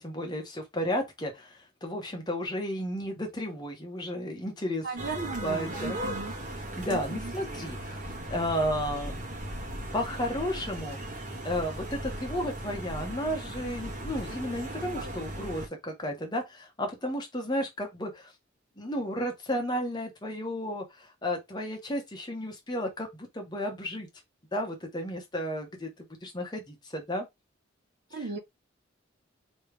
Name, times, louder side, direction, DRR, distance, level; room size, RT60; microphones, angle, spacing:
voice 1, 0.0-4.9 5.4-6.0 6.8-9.2 9.9-11.0 11.4-18.3 18.8-24.1 24.5-27.3, equal, 20° left, 1.2 m, -33 dB
voice 2, 4.8-6.4 6.9-7.3 28.1-28.4, right 3 dB, 60° right, 0.8 m, -36 dB
sound 1, 5.0-15.7, right 1 dB, 40° right, 1.5 m, -37 dB
3.3 x 3.1 x 3.3 m
head